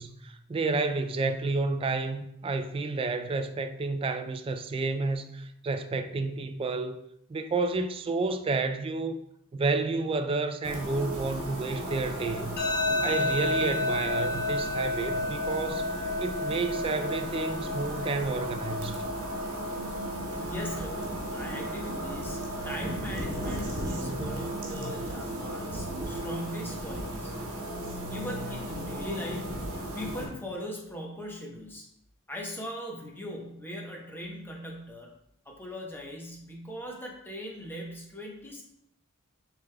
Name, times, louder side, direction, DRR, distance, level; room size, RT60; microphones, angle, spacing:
voice 1, 0.0-7.0 7.3-9.2 9.5-12.6 13.0-15.9 16.2-19.1, right 3 dB, 25° right, 0.3 m, -30 dB
sound 1, 10.6-30.3, right 1 dB, 70° right, 1.3 m, -36 dB
sound 2, 12.6-25.5, left 2 dB, 50° left, 1.1 m, -33 dB
voice 2, 20.3-27.3 28.1-31.8 32.3-35.1 35.4-38.6, equal, 10° left, 0.8 m, -40 dB
6.9 x 3.3 x 2.2 m
head